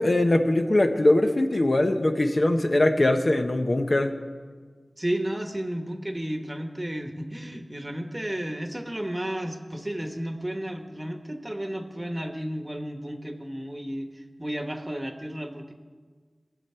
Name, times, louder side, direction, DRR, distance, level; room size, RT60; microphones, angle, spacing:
voice 1, 0.0-4.1, left 1 dB, 55° left, 5 dB, 0.8 m, -21 dB
voice 2, 5.0-15.7, right 1 dB, 25° right, 5 dB, 1.1 m, -33 dB
18.0 x 6.8 x 4.4 m, 1.6 s
wide cardioid pair, 50°, 0 cm